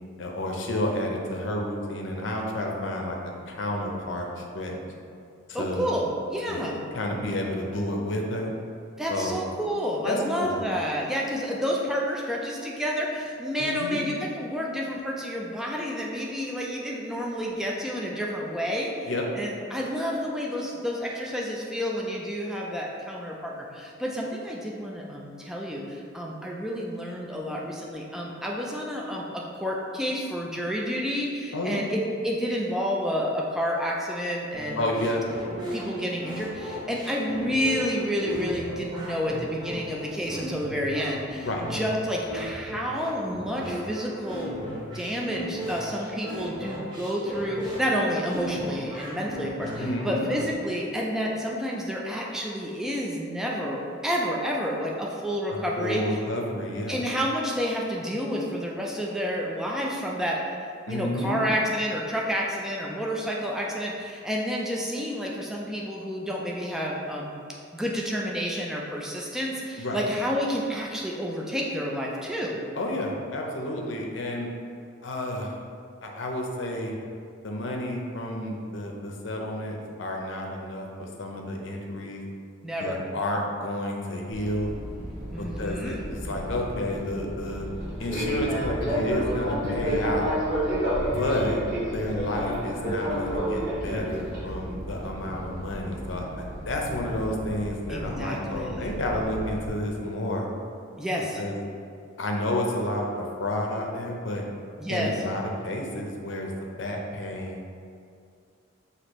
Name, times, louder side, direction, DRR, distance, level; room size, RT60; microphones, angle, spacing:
voice 1, 0.2-3.2 3.5-4.8 5.6-5.9 6.5-6.7 6.9-8.5 9.1-9.4 10.0-10.6 13.6-14.0 19.1-19.3 31.5-31.8 34.8-35.2 41.4-41.9 49.8-50.3 55.5-57.0 60.9-61.5 69.8-70.0 72.8-74.5 75.0-75.6 76.0-77.0 77.4-82.2 82.8-84.7 85.4-86.0 86.2-87.7 88.0-90.4 91.1-91.6 91.9-100.5 101.4-101.6 102.2-104.5 104.9-106.5 106.8-107.6, left 1 dB, 65° left, 0 dB, 0.6 m, -30 dB
voice 2, 5.5-6.1 6.3-6.7 9.0-19.1 19.3-35.0 35.7-56.2 56.9-67.3 67.7-72.6 82.6-83.0 85.3-86.0 97.9-98.9 101.0-101.4 104.8-105.2, equal, ahead, -3 dB, 0.3 m, -30 dB
sound 1, 34.5-50.5, equal, 20° right, 0.8 m, -36 dB
Fixed-wing aircraft airplane, 84.3-99.7, equal, 50° right, 1.4 m, -31 dB
6.1 x 2.8 x 3.0 m, 2.4 s
head